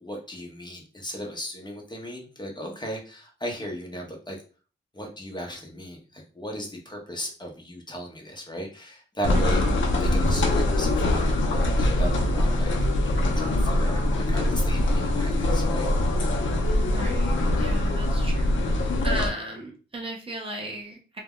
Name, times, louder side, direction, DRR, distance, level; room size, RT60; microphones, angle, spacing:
voice 1, 0.0-4.4 4.9-9.6 10.0-12.7 13.0-15.9, equal, 25° left, 1 dB, 0.7 m, -36 dB
sound 1, 9.2-19.3, left 1 dB, 80° left, 0.5 m, -23 dB
voice 2, 9.3-9.9 16.8-21.2, right 1 dB, 30° right, 0 dB, 0.6 m, -36 dB
2.2 x 2.0 x 3.5 m, 0.37 s
wide cardioid pair, 100°, 19 cm